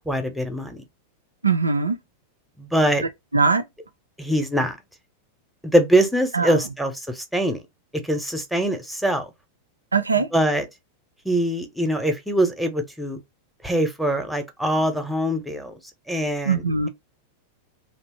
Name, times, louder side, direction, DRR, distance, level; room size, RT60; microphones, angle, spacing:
voice 1, 0.1-0.8 2.6-3.0 4.2-4.8 5.6-7.6 8.0-9.3 10.3-10.7 11.2-13.2 13.6-15.8 16.1-16.6, right 1 dB, ahead, 0.6 m, -23 dB
voice 2, 1.4-2.0 3.3-3.6 6.3-6.6 9.9-10.3 16.4-16.9, right 4 dB, 80° right, 0.4 m, -21 dB
2.8 x 2.0 x 2.9 m
figure-of-eight pair, 90°, 0 cm